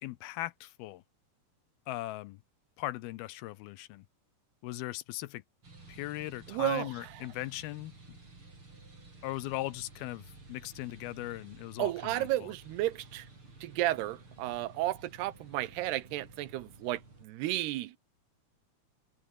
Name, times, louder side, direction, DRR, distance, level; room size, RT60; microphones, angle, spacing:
voice 1, 0.0-1.0 1.9-2.4 2.8-4.1 4.6-5.4 5.9-8.2 9.2-12.5, left 17 dB, 80° left, 2.4 m, -39 dB
sound 1, 5.6-17.3, right 3 dB, 30° right, 7.2 m, -53 dB
voice 2, 6.5-7.2 11.8-13.3 13.6-18.0, right 15 dB, 80° right, 3.1 m, -33 dB
omnidirectional pair, 4.7 m